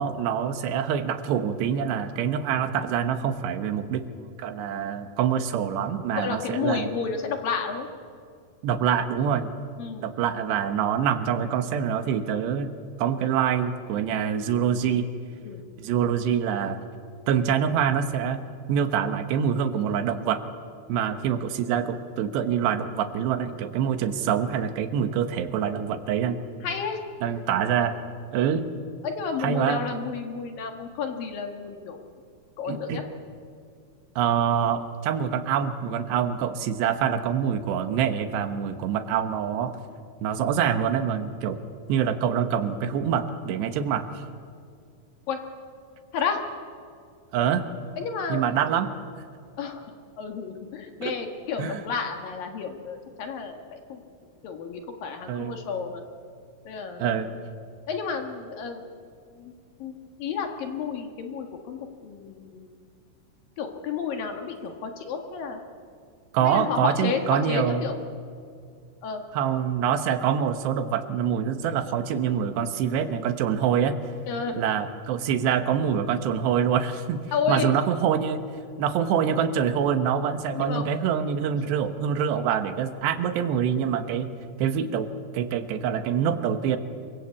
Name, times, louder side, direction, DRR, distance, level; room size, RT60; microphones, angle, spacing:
voice 1, 0.0-4.0 4.4-6.9 8.6-9.5 10.0-12.7 13.0-15.1 15.8-16.8 17.3-18.4 18.7-20.4 20.9-26.4 27.2-28.0 28.3-28.7 29.4-29.8 32.7-33.0 34.2-39.8 40.2-41.6 41.9-44.2 47.3-47.6 48.3-48.9 51.0-51.2 51.6-51.8 55.3-55.5 57.0-57.3 66.3-67.8 69.3-73.9 74.6-77.2 77.5-78.4 78.8-84.3 84.6-86.8, right 8 dB, 75° right, 9 dB, 3.2 m, -25 dB
voice 2, 6.1-7.9 9.8-10.1 15.4-15.6 26.6-27.0 29.0-32.0 32.6-33.0 45.3-45.4 46.1-46.4 48.0-48.4 49.6-49.8 50.2-54.0 54.4-56.0 56.6-57.1 57.9-58.8 59.4-59.5 59.8-62.7 63.6-65.6 66.4-68.0 69.0-69.2 74.3-74.6 77.3-77.7 80.5-81.0, left 6 dB, 60° left, 5 dB, 3.0 m, -31 dB
25.5 x 23.5 x 8.3 m, 2.3 s
omnidirectional pair, 5.1 m